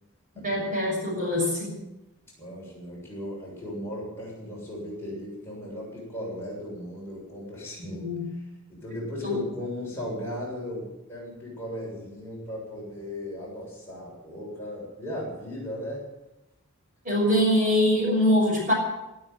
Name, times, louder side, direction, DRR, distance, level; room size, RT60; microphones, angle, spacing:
voice 1, 0.4-1.8 7.8-8.3 9.2-9.4 17.0-18.7, left 1 dB, 35° right, -2 dB, 6.3 m, -23 dB
voice 2, 2.4-8.0 8.7-16.1, left 1 dB, 10° left, -6 dB, 7.3 m, -36 dB
18.0 x 8.6 x 9.3 m, 0.97 s
head